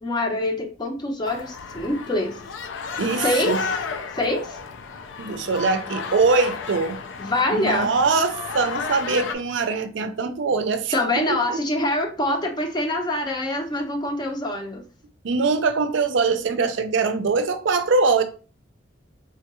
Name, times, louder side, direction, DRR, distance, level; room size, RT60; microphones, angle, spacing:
voice 1, 0.0-2.3 3.2-3.6 4.1-4.6 7.2-7.9 10.9-14.8, left 1 dB, 20° left, 0.5 m, -25 dB
sound 1, 1.2-9.3, left 5 dB, 75° left, 0.4 m, -33 dB
voice 2, 3.0-3.6 5.2-7.0 7.6-11.6 15.2-18.2, right 4 dB, 70° right, 0.5 m, -22 dB
3.7 x 2.2 x 2.9 m
head